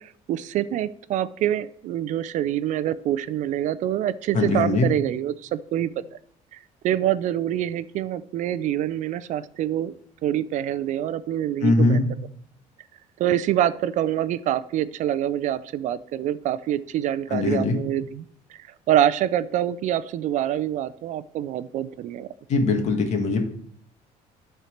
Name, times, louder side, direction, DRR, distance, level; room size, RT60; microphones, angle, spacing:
voice 1, 0.0-6.0 6.5-9.9 10.2-12.0 13.2-18.3 18.5-22.3, right 11 dB, 55° right, 16 dB, 0.5 m, -26 dB
voice 2, 4.3-4.9 11.6-12.0 17.3-17.8 22.5-23.4, left 3 dB, 50° left, 5 dB, 1.8 m, -21 dB
12.0 x 4.5 x 6.5 m, 0.63 s
cardioid pair, 145°, 15 cm